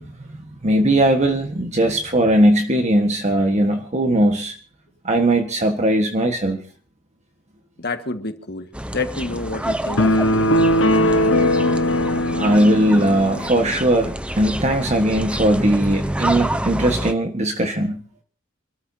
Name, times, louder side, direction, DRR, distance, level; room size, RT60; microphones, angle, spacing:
voice 1, 0.6-4.5 5.0-6.6 12.3-18.0, right 1 dB, 35° right, 1.4 m, -19 dB
voice 2, 7.8-10.5, left 3 dB, 55° left, 1.7 m, -29 dB
sound 1, 8.7-17.1, right 1 dB, 5° right, 0.8 m, -28 dB
sound 2, 10.0-13.5, left 1 dB, 80° left, 1.2 m, -19 dB
27.0 x 13.5 x 2.8 m
head